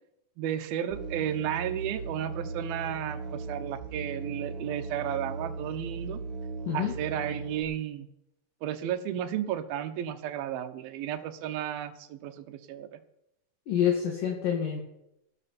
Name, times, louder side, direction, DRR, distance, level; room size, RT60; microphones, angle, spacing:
voice 1, 0.4-6.2 6.7-8.1 8.6-13.0, right 10 dB, 80° right, 8 dB, 2.8 m, -33 dB
Musical instrument, 0.9-7.6, right 4 dB, 50° right, 3.0 m, -38 dB
voice 2, 13.7-14.8, left 9 dB, 65° left, -1 dB, 3.4 m, -27 dB
16.0 x 12.5 x 4.3 m, 0.81 s
omnidirectional pair, 4.2 m